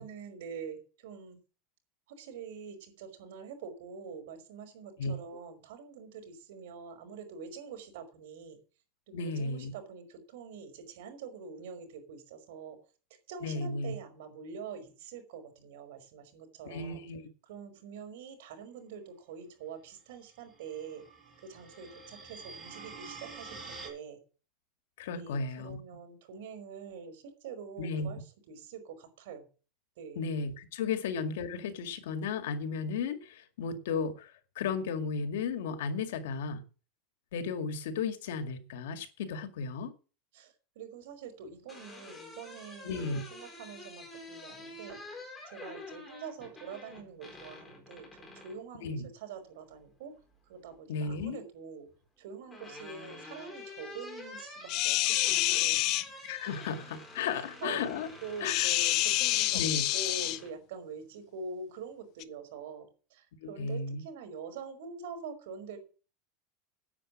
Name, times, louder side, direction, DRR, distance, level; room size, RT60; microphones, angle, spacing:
voice 1, 0.0-1.4 2.1-8.6 9.1-12.8 13.3-17.0 17.5-21.0 21.4-24.2 25.2-28.2 28.5-29.5 30.0-30.2 30.9-31.0 40.3-50.2 50.5-51.9 52.2-55.8 57.3-57.9 58.2-59.6 59.9-65.8, right 5 dB, 70° right, 7 dB, 5.2 m, -45 dB
voice 2, 9.1-9.7 13.4-13.9 16.6-17.3 25.0-25.8 27.8-28.1 30.2-36.6 37.3-39.9 42.8-43.2 48.8-49.1 50.9-51.4 56.2-58.1 58.4-58.7 59.5-59.9 63.4-64.0, left 5 dB, 85° left, 7 dB, 2.2 m, -34 dB
sound 1, 20.3-23.9, right 4 dB, 15° right, 5.9 m, -47 dB
sound 2, 41.4-48.6 50.1-50.8 52.0-60.5, left 2 dB, 10° left, 4.4 m, -48 dB
sound 3, 54.7-56.0 58.4-60.4 62.2-62.3, left 16 dB, 45° left, 0.8 m, -27 dB
9.8 x 8.7 x 7.5 m, 0.35 s
supercardioid pair, 155°, 0 cm